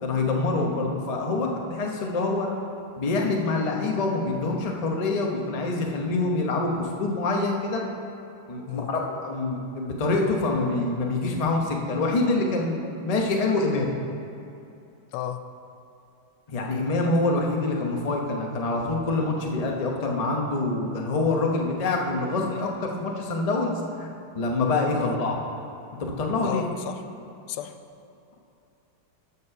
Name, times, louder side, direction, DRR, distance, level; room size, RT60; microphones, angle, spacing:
voice 1, 0.0-2.5 3.0-7.8 8.5-13.9 16.5-24.1 24.3-25.4 26.0-26.7, left 3 dB, 40° left, 0 dB, 0.5 m, -26 dB
voice 2, 15.1-15.4 24.9-25.2 26.4-27.0 27.5-27.8, left 10 dB, 90° left, 9 dB, 1.5 m, -33 dB
13.5 x 5.3 x 5.7 m, 2.7 s
omnidirectional pair, 2.3 m